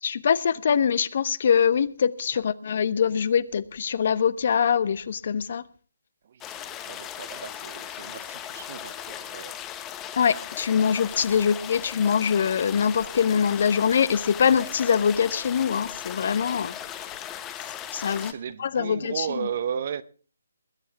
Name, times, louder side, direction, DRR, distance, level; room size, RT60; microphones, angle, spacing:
voice 1, 0.0-5.6 10.2-16.7 17.9-18.3 18.6-19.5, left 7 dB, 50° left, 0.8 m, -23 dB
voice 2, 6.3-9.5 11.3-11.5 18.1-20.0, right 8 dB, 45° right, 0.8 m, -35 dB
sound 1, 6.4-18.3, left 10 dB, 15° left, 1.0 m, -38 dB
21.0 x 8.5 x 4.7 m
figure-of-eight pair, 145°, 0 cm